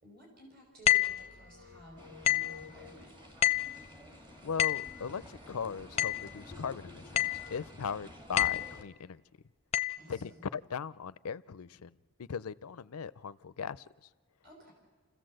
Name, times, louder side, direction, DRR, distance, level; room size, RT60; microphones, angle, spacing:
voice 1, 0.0-3.2 9.9-10.4 14.4-14.7, equal, 45° right, 0 dB, 5.5 m, -54 dB
sound 1, 0.9-1.2 2.2-2.6 3.4-3.8 4.6-4.9 6.0-6.3 7.2-7.5 8.4-8.7 9.7-10.0, left 13 dB, 30° left, 0.6 m, -28 dB
sound 2, 1.0-3.4, left 5 dB, 60° right, 3.1 m, -54 dB
sound 3, 2.0-8.8, left 1 dB, 20° right, 1.9 m, -51 dB
voice 2, 4.4-9.2 10.1-13.9, left 6 dB, 90° left, 18 dB, 0.5 m, -39 dB
28.5 x 15.5 x 7.7 m, 1.5 s
head